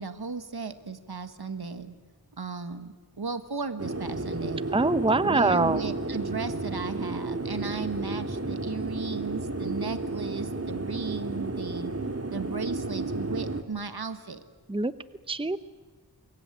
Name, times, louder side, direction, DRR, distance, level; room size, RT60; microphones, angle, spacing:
voice 1, 0.0-1.9 2.3-4.6 5.1-11.9 12.3-14.4, right 4 dB, 70° right, 10 dB, 1.7 m, -35 dB
sound 1, 3.8-13.6, right 2 dB, 40° right, 1.8 m, -32 dB
voice 2, 4.7-5.8 14.7-14.9 15.3-15.6, right 3 dB, 15° right, 14 dB, 0.8 m, -24 dB
26.0 x 22.5 x 9.3 m, 1.4 s
wide cardioid pair, 50°, 39 cm